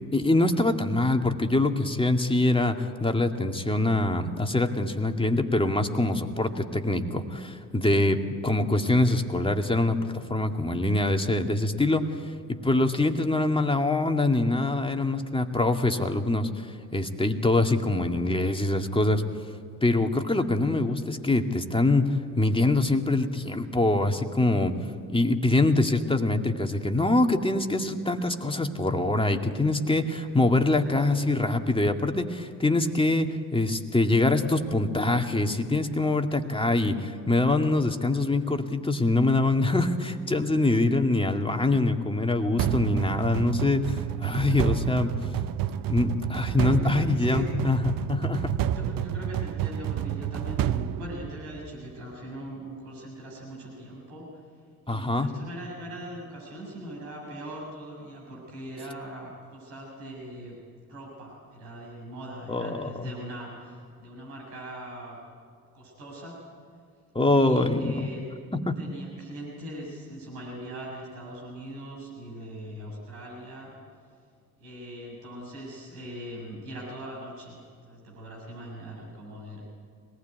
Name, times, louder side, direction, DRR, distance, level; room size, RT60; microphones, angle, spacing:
voice 1, 0.1-16.7 16.9-19.2 19.8-24.8 25.1-45.1 45.9-48.5 54.9-55.3 62.5-63.1 67.1-68.1 68.5-68.8, left 2 dB, 10° left, 5 dB, 2.3 m, -24 dB
sound 1, 42.6-51.8, right 10 dB, 50° right, 1.0 m, -29 dB
voice 2, 46.5-47.4 48.7-54.4 54.8-60.5 60.9-65.2 65.7-66.4 67.4-68.2 68.8-73.7 74.6-77.6 77.8-79.6, right 1 dB, 75° right, -3 dB, 7.4 m, -41 dB
26.0 x 19.5 x 9.4 m, 2.2 s
figure-of-eight pair, 50°, 44 cm